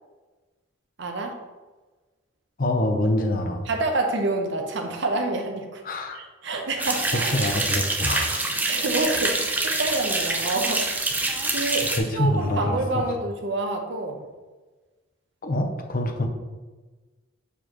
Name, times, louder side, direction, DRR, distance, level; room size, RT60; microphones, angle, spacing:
voice 1, 1.0-1.4 3.6-5.8 6.1-10.8 11.4-14.2, right 2 dB, 60° right, 4 dB, 0.8 m, -28 dB
voice 2, 2.6-3.6 5.8-6.2 6.8-8.4 11.4-11.5 12.0-13.0 15.4-16.3, left 1 dB, 45° left, 4 dB, 0.7 m, -26 dB
sound 1, 6.8-12.0, right 2 dB, 10° right, 0.5 m, -26 dB
7.0 x 4.5 x 3.0 m, 1.3 s
head